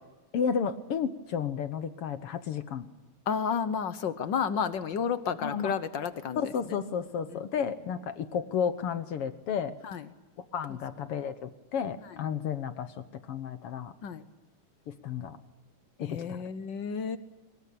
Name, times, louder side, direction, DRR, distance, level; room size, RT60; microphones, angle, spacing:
voice 1, 0.3-2.9 5.4-5.7 6.4-9.8 10.5-13.9 14.9-15.4 16.0-16.4, left 7 dB, 60° left, 11 dB, 1.7 m, -32 dB
voice 2, 3.3-6.8 7.3-7.4 9.8-10.0 14.0-14.2 16.0-17.2, left 7 dB, 75° left, 12 dB, 1.0 m, -31 dB
24.5 x 21.5 x 8.5 m, 1.1 s
omnidirectional pair, 3.5 m